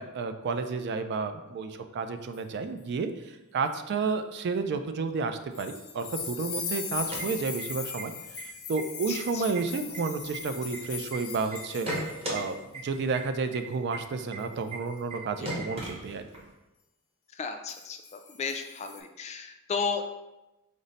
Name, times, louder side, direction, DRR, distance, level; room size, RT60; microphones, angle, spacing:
voice 1, 0.0-3.1 3.5-8.1 8.7-11.9 12.3-16.3, right 4 dB, 50° right, 8 dB, 0.3 m, -31 dB
sound 1, 5.5-12.5 12.8-13.0 14.4-14.7 17.7-19.0, left 7 dB, 80° left, 0.7 m, -39 dB
sound 2, 7.0-8.0 8.3-8.4 8.8-9.2 9.5-11.2 11.5-12.4 12.7-12.8 13.1-13.2 13.5-13.6 13.9-14.0 14.3-14.4 14.7-14.8 15.1-15.2 15.4-16.5, right 1 dB, 30° right, 0.9 m, -35 dB
voice 2, 9.1-9.4 15.4-15.5 17.4-18.0 18.4-20.0, left 5 dB, 30° left, 6 dB, 0.3 m, -33 dB
5.1 x 2.1 x 3.9 m, 0.98 s
head